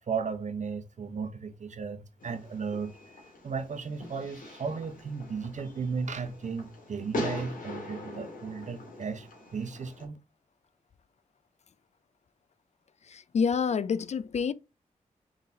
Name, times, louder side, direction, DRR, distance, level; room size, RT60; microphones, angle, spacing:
voice 1, 0.1-2.9 3.4-9.3 9.5-10.2, right 5 dB, 55° right, 0.9 m, -35 dB
Fireworks, 2.2-10.0, left 2 dB, 75° left, 2.2 m, -41 dB
voice 2, 13.1-14.5, left 6 dB, 50° left, 0.4 m, -28 dB
4.7 x 3.8 x 2.7 m
supercardioid pair, 45°, 14 cm